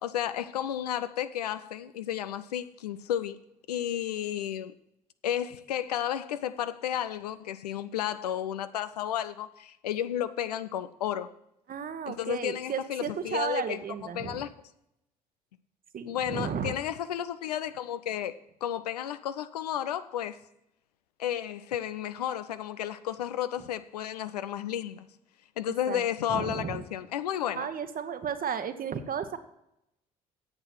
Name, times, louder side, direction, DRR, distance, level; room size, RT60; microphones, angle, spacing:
voice 1, 0.0-3.4 3.7-4.7 5.2-11.3 12.1-13.8 14.1-14.5 16.1-20.4 21.2-25.1 25.6-27.7, left 10 dB, 85° left, 0.5 m, -32 dB
voice 2, 11.7-14.5 15.9-16.7 25.9-26.0 26.3-26.8 27.5-29.4, right 7 dB, 45° right, 1.1 m, -34 dB
8.8 x 8.1 x 6.0 m
figure-of-eight pair, 45°, 20 cm